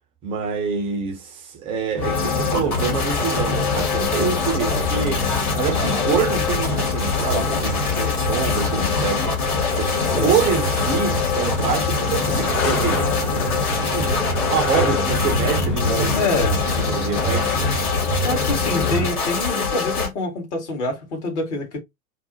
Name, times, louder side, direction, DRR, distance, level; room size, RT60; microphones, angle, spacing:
voice 1, 0.2-9.3 9.7-14.2 14.5-16.3 16.8-17.7, right 6 dB, 15° right, 0.4 m, -26 dB
sound 1, 2.0-20.1, left 4 dB, 70° left, 2.0 m, -25 dB
sound 2, 2.0-19.1, left 2 dB, 35° left, 1.2 m, -26 dB
voice 2, 16.2-16.6 18.2-21.8, left 3 dB, 50° left, 1.8 m, -26 dB
4.6 x 2.0 x 2.6 m
figure-of-eight pair, 105°, 44 cm